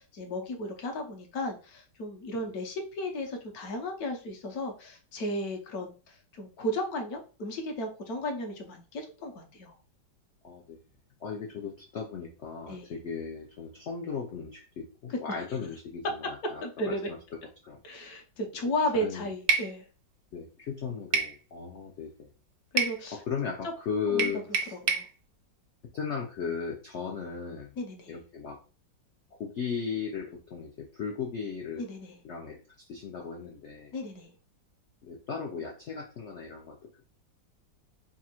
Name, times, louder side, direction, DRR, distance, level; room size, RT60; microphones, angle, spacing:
voice 1, 0.0-9.7 12.7-13.0 15.1-15.2 16.6-17.1 17.8-19.8 22.7-23.2 24.1-24.3 24.7-25.0 27.8-28.1 31.8-32.2 33.9-34.3, left 1 dB, 65° left, 4 dB, 1.2 m, -34 dB
voice 2, 10.4-10.8 11.2-17.2 17.6-17.8 18.6-19.3 20.3-22.3 23.1-24.7 25.9-27.7 28.1-28.6 29.3-31.9 32.2-32.6 32.9-33.9 35.0-37.1, left 6 dB, 85° left, 2 dB, 0.6 m, -36 dB
sound 1, 19.5-19.7 21.1-21.4 22.8-23.0 24.2-25.1, right 6 dB, 90° right, 1.4 m, -27 dB
3.5 x 2.4 x 4.3 m, 0.36 s
omnidirectional pair, 1.9 m